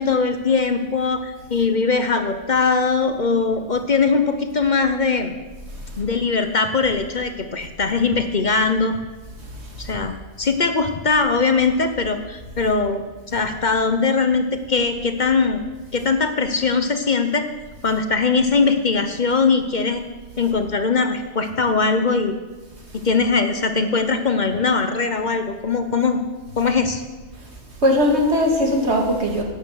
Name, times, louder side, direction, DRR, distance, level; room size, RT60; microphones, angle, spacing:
voice 1, 0.0-5.3 6.0-9.0 9.8-15.6 15.9-17.4 17.8-20.0 20.4-22.3 22.9-26.2 26.6-27.0, left 4 dB, 45° left, 8 dB, 0.9 m, -21 dB
voice 2, 5.6-6.1 9.3-10.0 10.4-10.6 16.0-16.1 20.4-20.5 22.7-23.1 26.5-26.7 27.3-29.4, left 1 dB, 75° right, 0 dB, 2.5 m, -23 dB
13.0 x 9.0 x 6.4 m, 1.3 s
omnidirectional pair, 1.2 m